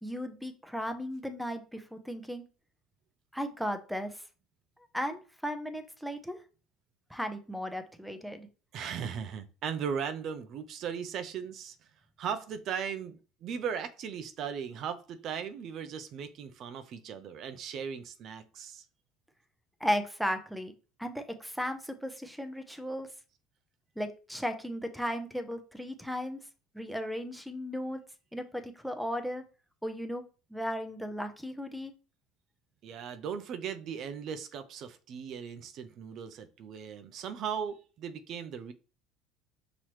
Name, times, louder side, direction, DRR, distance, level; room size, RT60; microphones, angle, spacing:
voice 1, 0.0-2.4 3.3-4.2 4.9-6.4 7.1-8.5 19.8-20.7 21.0-23.1 24.0-26.4 26.7-28.0 28.3-29.4 29.8-30.2 30.5-31.9, equal, ahead, 0.6 m, -35 dB
voice 2, 8.7-11.9 12.2-18.8 32.8-38.7, right 7 dB, 50° right, 0.5 m, -38 dB
5.6 x 3.0 x 3.1 m
cardioid pair, 125°, 0 cm